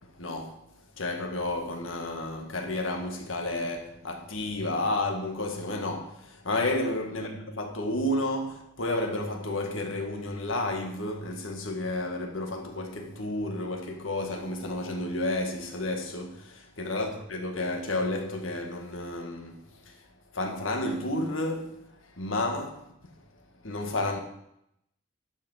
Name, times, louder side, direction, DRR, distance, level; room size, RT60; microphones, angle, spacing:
voice 1, 0.2-0.6 1.0-20.0 20.3-21.8 22.2-22.9 23.6-24.2, left 2 dB, 80° left, 1.8 m, -31 dB
11.5 x 6.0 x 6.4 m
head